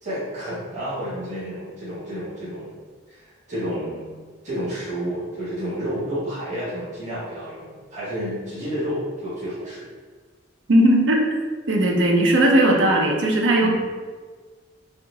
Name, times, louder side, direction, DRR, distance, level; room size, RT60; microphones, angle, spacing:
voice 1, 0.0-2.7 3.1-4.1 4.4-9.8 13.6-13.7, equal, 40° right, -12 dB, 1.5 m, -30 dB
voice 2, 10.7-11.2 11.7-13.7, right 1 dB, 80° right, 1 dB, 0.6 m, -17 dB
4.2 x 2.4 x 2.8 m, 1.5 s
head